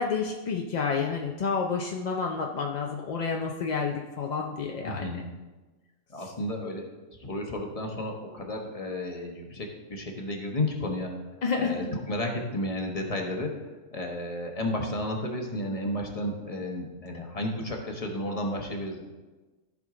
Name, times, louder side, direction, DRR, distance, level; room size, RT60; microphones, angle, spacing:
voice 1, 0.0-5.1 6.2-6.3 11.4-11.9, left 5 dB, 45° left, 1 dB, 0.6 m, -29 dB
voice 2, 4.8-5.2 6.1-6.9 7.2-11.1 11.6-13.6 13.9-19.0, left 1 dB, 30° left, 1 dB, 1.2 m, -32 dB
14.5 x 5.1 x 3.8 m, 1.2 s
omnidirectional pair, 1.3 m